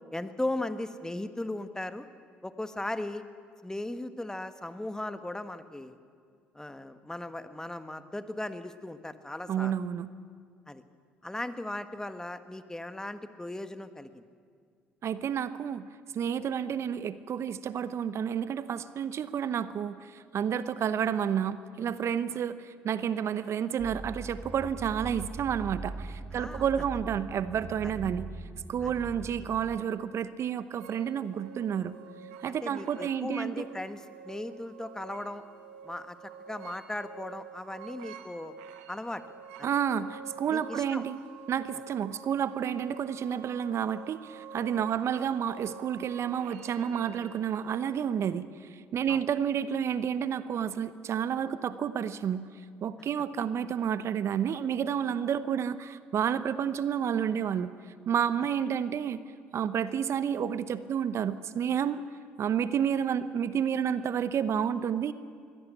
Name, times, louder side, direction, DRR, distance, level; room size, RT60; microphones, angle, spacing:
voice 1, 0.1-2.1 2.4-3.2 3.6-6.0 6.5-9.8 10.7-10.8 11.2-14.2 22.3-22.4 26.3-26.8 28.8-28.9 32.5-35.4 35.8-38.5 38.9-39.2 39.6-39.7 40.5-41.0 49.1-49.2, left 1 dB, 10° left, 10 dB, 1.6 m, -37 dB
voice 2, 9.5-10.1 15.0-15.9 16.1-20.0 20.3-22.6 22.8-28.3 28.7-32.0 32.4-33.7 39.6-41.2 41.5-48.5 48.9-52.5 52.8-57.7 58.1-59.2 59.5-62.0 62.4-65.1, right 8 dB, 55° right, 14 dB, 0.9 m, -30 dB
sound 1, 23.8-29.8, right 3 dB, 25° right, 1.0 m, -41 dB
sound 2, 30.8-48.3, right 7 dB, 80° right, 1.5 m, -48 dB
22.0 x 16.5 x 8.6 m, 2.1 s
hypercardioid pair, 55°, 6 cm